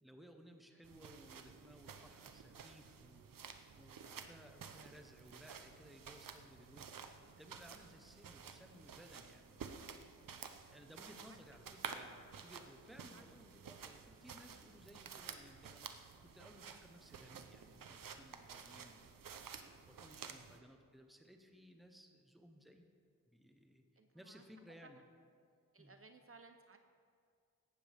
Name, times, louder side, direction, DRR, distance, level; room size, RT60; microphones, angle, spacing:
voice 1, 0.0-3.3 3.7-7.1 7.4-10.0 10.6-19.2 19.8-22.9 23.3-23.8 24.1-25.0 25.8-26.0, equal, ahead, 4 dB, 1.0 m, -60 dB
sound 1, 0.8-20.6, right 6 dB, 75° right, 0.8 m, -52 dB
voice 2, 24.0-24.4 24.8-24.9 25.7-26.8, right 4 dB, 40° right, 6 dB, 0.7 m, -60 dB
17.0 x 12.0 x 3.5 m, 2.2 s
wide cardioid pair, 120°, 34 cm